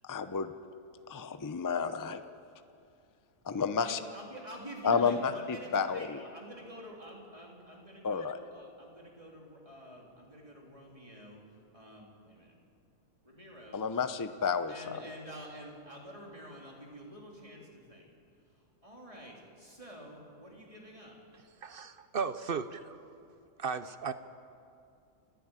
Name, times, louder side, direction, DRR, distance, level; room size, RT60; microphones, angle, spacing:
voice 1, 0.0-0.5 1.1-2.2 3.4-4.0 4.8-6.2 8.0-8.4 13.7-15.1, left 5 dB, 25° left, 10 dB, 0.4 m, -31 dB
voice 2, 3.8-11.4 11.7-12.5 13.2-13.8 14.7-18.0 18.5-21.2, right 1 dB, 20° right, -2 dB, 3.4 m, -48 dB
voice 3, 21.6-23.0 23.6-24.1, right 5 dB, 50° right, 12 dB, 0.7 m, -35 dB
29.0 x 10.0 x 9.0 m, 2.5 s
omnidirectional pair, 1.5 m